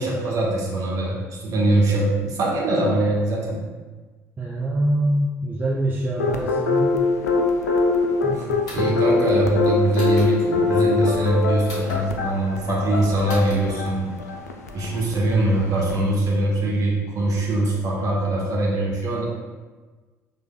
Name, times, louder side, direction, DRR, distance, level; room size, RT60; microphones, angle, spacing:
voice 1, 0.0-3.6 8.7-14.1 14.7-19.2, right 1 dB, 45° right, -4 dB, 1.2 m, -22 dB
voice 2, 4.4-6.9 8.2-8.9, right 1 dB, 20° right, -4 dB, 0.6 m, -25 dB
sound 1, 6.2-16.0, left 3 dB, 80° left, 0.3 m, -23 dB
sound 2, 8.7-9.0 9.9-10.3 11.7-12.0 13.3-13.6, left 1 dB, 60° left, 1.2 m, -36 dB
5.7 x 3.3 x 2.2 m, 1.3 s
figure-of-eight pair, 55°, 8 cm